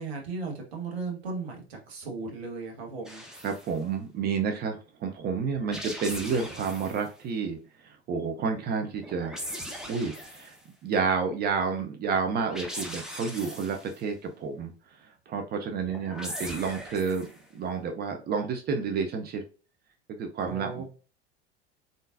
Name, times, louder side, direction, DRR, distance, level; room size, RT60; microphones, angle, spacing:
voice 1, 0.0-3.2 20.4-20.8, right 4 dB, 70° right, 1 dB, 1.6 m, -36 dB
sound 1, 3.1-3.7 5.5-7.1 9.0-10.6 12.4-14.0 15.8-17.4, equal, ahead, 1.0 m, -40 dB
voice 2, 3.4-9.4 9.9-10.6 10.8-17.3 17.5-19.4 20.2-20.8, right 5 dB, 30° right, 4 dB, 0.6 m, -30 dB
3.7 x 3.7 x 2.6 m, 0.35 s
figure-of-eight pair, 80°, 33 cm